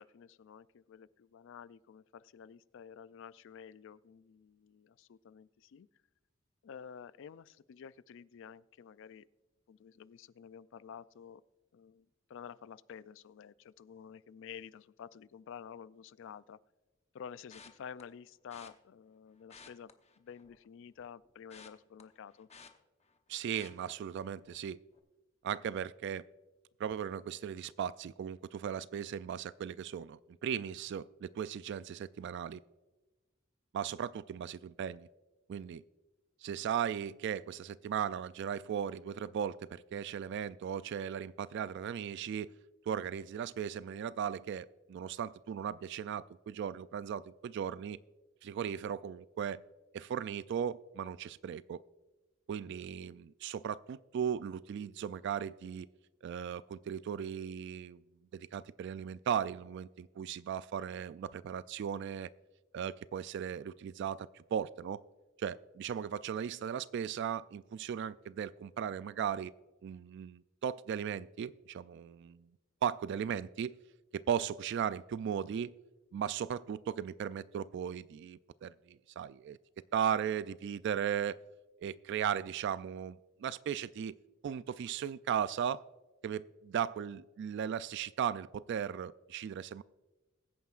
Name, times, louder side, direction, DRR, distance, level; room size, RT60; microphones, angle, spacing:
voice 1, 0.0-5.9 6.6-9.3 9.7-11.4 11.7-16.6 17.1-22.5 53.0-53.1, left 7 dB, 65° left, 18 dB, 0.4 m, -51 dB
sound 1, 17.5-18.0 18.5-18.7 19.4-20.6 21.0-23.2 23.5-23.9 24.4-24.6 24.9-25.0, left 5 dB, 30° left, 0.9 m, -55 dB
voice 2, 23.3-24.8 25.4-26.2 26.8-32.6 33.7-35.1 35.5-35.8 36.4-42.5 42.9-48.0 48.4-49.6 49.9-51.8 52.5-55.9 56.2-58.0 58.3-62.3 62.7-65.0 65.4-69.5 69.8-72.5 72.8-73.7 74.1-75.7 76.1-79.6 79.9-81.4 81.8-84.1 84.4-85.8 86.2-89.8, right 8 dB, 60° right, 16 dB, 0.3 m, -37 dB
22.0 x 9.3 x 2.4 m, 1.1 s
head